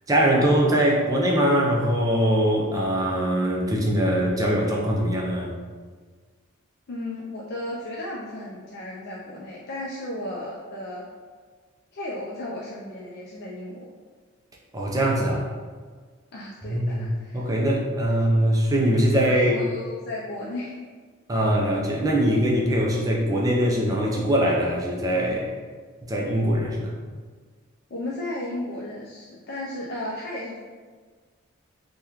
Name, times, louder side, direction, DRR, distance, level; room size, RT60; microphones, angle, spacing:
voice 1, 0.1-5.6 14.7-15.5 16.6-17.1 17.3-19.6 21.3-25.5 26.1-26.9, equal, 15° right, -2 dB, 0.4 m, -22 dB
voice 2, 6.9-11.0 11.9-13.9 16.3-17.5 19.3-20.8 27.9-30.6, left 1 dB, 50° left, -5 dB, 0.4 m, -34 dB
2.8 x 2.2 x 3.5 m, 1.5 s
head